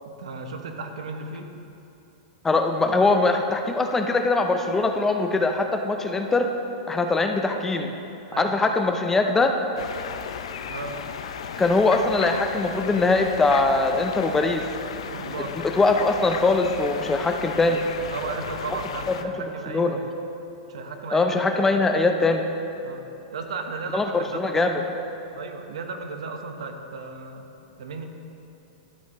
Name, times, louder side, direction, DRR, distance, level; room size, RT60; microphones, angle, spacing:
voice 1, 0.0-1.5 8.3-8.6 10.7-11.0 15.1-15.6 18.1-20.1 20.7-21.3 22.8-23.0 23.3-24.1 24.4-24.8 25.3-27.5 27.8-28.0, right 4 dB, 85° right, 5 dB, 1.0 m, -35 dB
voice 2, 2.4-6.5 6.9-7.9 8.4-9.5 11.6-14.6 15.6-17.8 19.1-19.2 19.7-20.0 21.1-22.4 23.9-24.8, left 3 dB, 10° left, 5 dB, 0.5 m, -22 dB
sound 1, 9.8-19.2, left 7 dB, 80° left, 0.5 m, -35 dB
12.5 x 8.4 x 3.0 m, 2.9 s
supercardioid pair, 145°, 3 cm